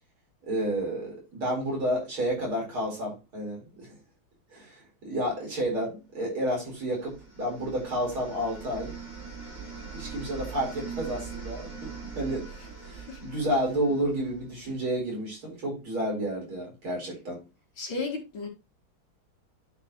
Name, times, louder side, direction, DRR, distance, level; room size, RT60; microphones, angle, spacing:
voice 1, 0.5-4.0 4.5-9.0 9.9-12.5 12.8-17.4, equal, 75° right, 5.4 m, -31 dB
sound 1, 6.7-14.7, right 5 dB, 45° right, 4.3 m, -42 dB
voice 2, 17.8-18.5, left 3 dB, 65° left, 3.1 m, -34 dB
11.0 x 5.2 x 3.1 m
omnidirectional pair, 2.3 m